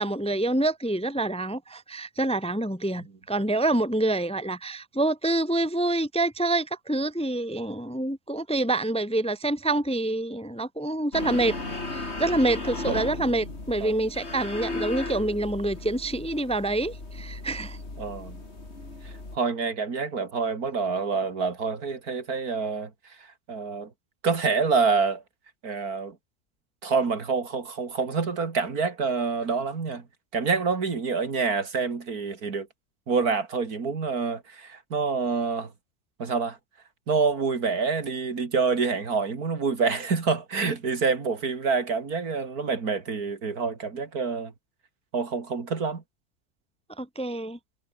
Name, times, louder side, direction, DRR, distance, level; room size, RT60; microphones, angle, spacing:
voice 1, 0.0-17.8 47.0-47.6, right 2 dB, 5° left, 1.0 m, -27 dB
sound 1, 11.1-19.4, left 2 dB, 45° left, 4.0 m, -36 dB
voice 2, 18.0-18.4 19.0-22.9 23.5-23.9 24.2-25.2 25.6-26.2 26.8-30.1 30.3-32.7 33.1-35.7 36.2-36.6 37.1-44.5 45.1-46.0, right 4 dB, 75° right, 3.0 m, -27 dB
omnidirectional pair, 1.6 m